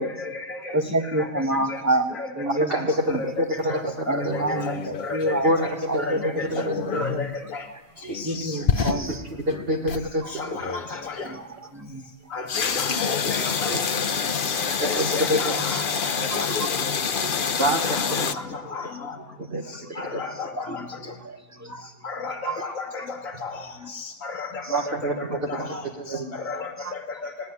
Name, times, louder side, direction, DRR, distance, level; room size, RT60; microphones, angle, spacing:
voice 1, 0.0-0.7 1.7-1.8 2.1-2.3 2.7-2.8 3.2-3.3 3.7-3.8 4.1-4.2 4.7-4.8 5.1-5.2 5.6-5.7 6.1-7.3 7.5-7.6 8.1-8.5 10.4-11.3 12.3-13.8 14.8-16.7 17.6-18.2 18.7-19.1 20.0-20.8 22.0-23.0 23.4-23.5 24.2-24.8 25.5-25.6 26.5-26.7, left 4 dB, 70° left, -1 dB, 1.7 m, -32 dB
voice 2, 0.7-3.2 4.1-5.5 5.9-6.3 7.0-7.1 8.0-9.2 10.2-10.3 10.6-10.8 11.2-11.5 11.7-12.1 13.6-13.7 14.4-14.8 15.3-15.4 15.7-15.8 16.2-16.6 17.1-17.6 18.3-18.4 19.6-20.7 21.2-21.9 22.4-22.6 24.6-24.7 25.7-25.8 26.5-26.9, right 1 dB, 15° right, 7 dB, 1.1 m, -29 dB
voice 3, 2.7-4.3 5.4-5.7 6.1-7.2 9.1-9.2 9.5-10.3 14.8-15.6 17.6-18.3 19.4-19.6 20.1-20.2 24.7-25.7 26.0-26.3, equal, 40° right, 0 dB, 1.7 m, -26 dB
sound 1, 4.2-5.6 6.4-7.4 8.1-10.1 10.6-10.9 12.5-18.3, left 6 dB, 45° left, 0.9 m, -27 dB
19.0 x 17.5 x 9.6 m, 1.3 s
omnidirectional pair, 1.5 m